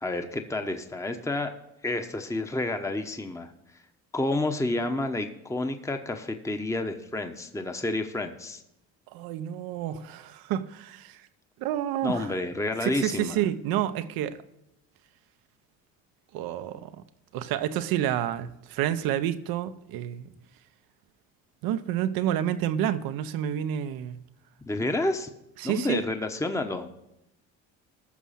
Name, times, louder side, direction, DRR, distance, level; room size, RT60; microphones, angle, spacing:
voice 1, 0.0-1.5 1.8-3.5 4.1-8.6 12.0-13.4 24.7-25.3 25.6-26.9, left 2 dB, 10° left, 1.0 m, -29 dB
voice 2, 9.1-11.2 11.6-12.3 12.8-14.4 16.3-16.9 17.3-20.3 21.6-24.2 25.6-26.0, right 11 dB, 75° right, 0.9 m, -29 dB
14.5 x 6.1 x 5.7 m
supercardioid pair, 80°, 36 cm